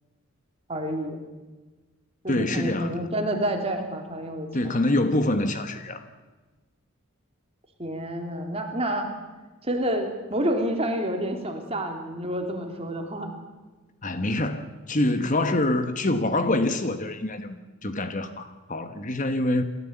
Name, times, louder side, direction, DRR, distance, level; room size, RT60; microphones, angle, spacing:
voice 1, 0.7-1.2 2.2-4.8 7.8-9.1 9.6-13.3, right 1 dB, 25° right, 3 dB, 3.1 m, -29 dB
voice 2, 2.3-3.1 4.5-6.0 14.0-19.6, left 1 dB, 35° left, 9 dB, 1.2 m, -25 dB
28.0 x 13.5 x 8.2 m, 1.3 s
head